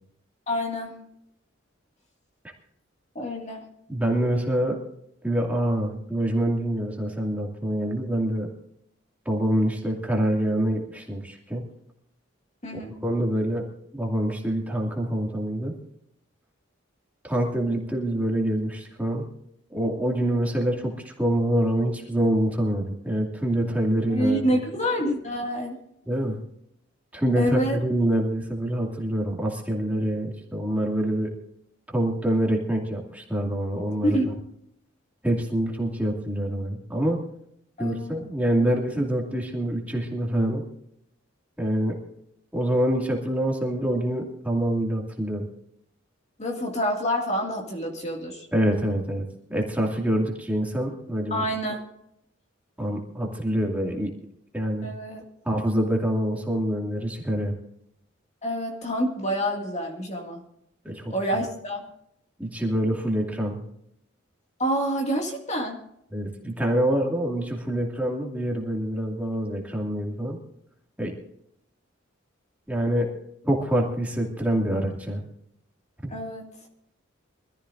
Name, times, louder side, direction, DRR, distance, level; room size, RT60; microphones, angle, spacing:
voice 1, 0.5-1.0 3.2-3.7 12.6-13.0 24.1-25.8 27.3-27.8 34.0-34.3 37.8-38.2 46.4-48.5 51.3-51.8 54.8-55.2 58.4-60.4 61.1-61.8 64.6-65.8 76.1-76.4, equal, 35° left, 1 dB, 2.1 m, -27 dB
voice 2, 3.9-4.8 5.2-8.5 9.3-11.6 12.7-13.6 13.9-15.7 17.2-19.3 19.7-24.4 26.1-26.4 27.1-31.3 31.9-34.2 35.2-37.2 37.8-40.6 41.6-42.0 42.5-45.5 48.5-51.4 52.8-54.1 54.5-54.9 55.4-57.5 60.8-61.4 62.4-63.6 66.1-70.4 71.0-71.1 72.7-73.1 73.4-75.2, right 1 dB, 10° right, -1 dB, 2.3 m, -26 dB
24.5 x 14.0 x 2.6 m, 0.75 s
head